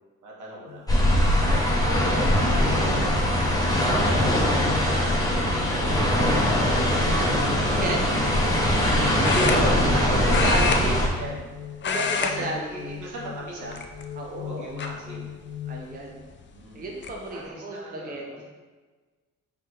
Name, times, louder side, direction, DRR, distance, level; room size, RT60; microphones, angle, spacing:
voice 1, 0.2-0.9 1.7-3.2 3.8-6.4 9.2-11.4 12.2-13.8 14.4-15.3 16.5-16.9 17.3-18.4, right 2 dB, 80° right, -4 dB, 1.5 m, -36 dB
sound 1, 0.7-16.0, left 8 dB, 90° left, 0.8 m, -39 dB
sound 2, 0.9-11.1, equal, 10° left, 1.0 m, -22 dB
voice 2, 1.4-2.3 7.7-8.6 10.2-11.0 11.8-13.0 14.2-14.7 15.7-16.2 16.7-18.4, right 2 dB, 30° right, -1 dB, 0.7 m, -33 dB
sound 3, 9.2-10.0 10.3-11.5 11.8-12.3 12.6-12.9 13.7-14.2 14.8-14.9 16.3-16.4 16.7-17.1, left 5 dB, 40° left, 0.5 m, -27 dB
4.4 x 3.6 x 3.3 m, 1.3 s
cardioid pair, 90°, 30 cm